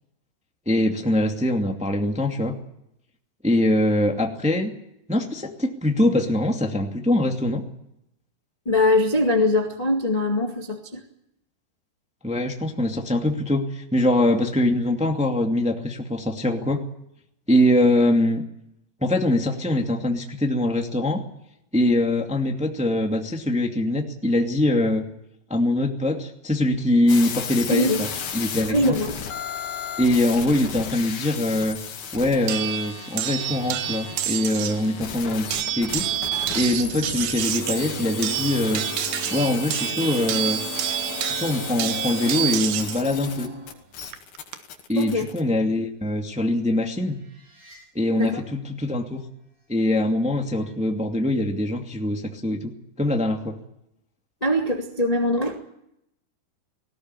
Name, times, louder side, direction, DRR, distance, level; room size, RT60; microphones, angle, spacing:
voice 1, 0.6-2.5 3.4-4.7 5.1-7.6 12.2-16.8 17.5-18.4 19.0-21.2 21.7-25.1 25.5-29.0 30.0-31.8 32.1-36.1 36.5-38.8 39.3-40.6 41.2-43.5 44.9-47.2 47.9-49.2 49.7-52.7 53.0-53.6, left 1 dB, 5° right, 2 dB, 1.1 m, -23 dB
voice 2, 8.6-11.0 27.7-28.0 28.7-29.2 44.9-45.3 48.2-48.4 54.4-55.6, left 1 dB, 20° left, 2 dB, 0.9 m, -22 dB
sound 1, 27.1-45.4, left 7 dB, 70° left, 4.0 m, -35 dB
sound 2, 32.5-34.9 35.5-43.0 44.1-44.6, right 12 dB, 80° right, 3.2 m, -28 dB
sound 3, 33.4-43.9 47.2-47.8 50.3-50.7, right 1 dB, 65° right, 9.9 m, -39 dB
19.0 x 17.5 x 9.8 m, 0.79 s
omnidirectional pair, 4.5 m